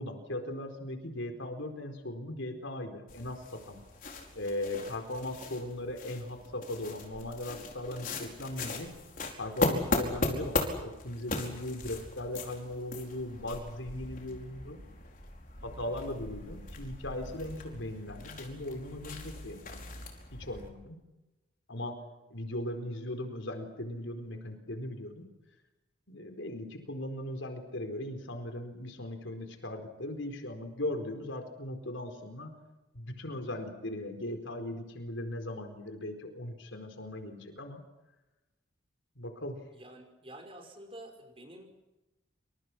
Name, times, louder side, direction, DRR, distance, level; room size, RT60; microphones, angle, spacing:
voice 1, 0.0-3.8 4.3-8.9 9.4-14.8 15.6-20.0 20.3-21.0 21.7-22.0 22.3-25.3 26.1-32.5 32.9-37.8 39.2-39.6, left 1 dB, 85° left, 5 dB, 4.4 m, -38 dB
sound 1, 3.1-20.7, left 2 dB, 45° left, 5.0 m, -38 dB
voice 2, 39.7-41.9, right 1 dB, 30° right, 4 dB, 5.4 m, -49 dB
29.5 x 26.5 x 6.2 m, 1.0 s
head